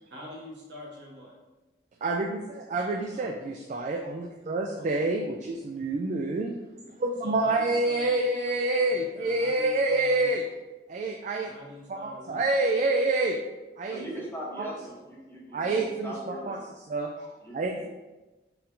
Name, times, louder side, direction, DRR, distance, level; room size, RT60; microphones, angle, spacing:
voice 1, 0.1-1.3 2.9-3.3 4.8-5.0 6.8-6.9 7.2-8.2 8.7-10.4 11.4-12.4 14.8-15.1 15.5-15.6 17.2-17.7, equal, 80° right, -3 dB, 1.1 m, -46 dB
voice 2, 2.0-6.5 6.9-10.4 10.9-11.5 11.9-13.4 13.8-14.0 14.6-14.7 15.5-16.6 16.9-17.1 17.5-17.9, right 2 dB, 45° right, 2 dB, 0.3 m, -27 dB
voice 3, 13.9-16.6 17.4-17.9, right 1 dB, 15° left, -4 dB, 0.9 m, -40 dB
4.5 x 3.7 x 2.6 m, 1.1 s
head